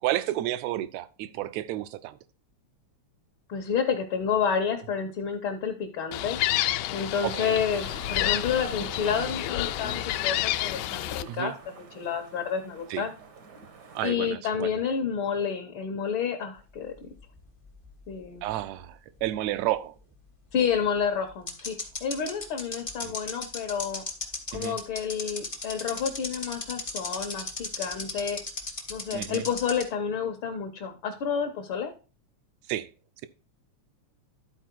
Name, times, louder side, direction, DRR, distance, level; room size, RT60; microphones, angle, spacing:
voice 1, 0.0-2.2 7.2-7.6 11.3-11.5 12.9-13.0 14.0-14.8 18.4-19.9 23.0-23.1 24.5-24.8 29.1-29.5 32.7-32.9, right 14 dB, 75° right, 1.8 m, -31 dB
voice 2, 3.5-6.4 6.9-13.1 14.0-17.1 18.1-18.5 20.5-24.0 24.5-28.4 28.9-31.9, left 7 dB, 60° left, 1.5 m, -30 dB
Gull seagull, 6.1-11.2, left 15 dB, 85° left, 2.0 m, -29 dB
sound 1, 7.7-14.1, right 4 dB, 55° right, 1.1 m, -46 dB
sound 2, 17.0-18.5 18.8-18.9 20.7-20.8 21.5-29.8, left 3 dB, 40° left, 0.4 m, -35 dB
12.0 x 4.5 x 4.5 m
omnidirectional pair, 3.4 m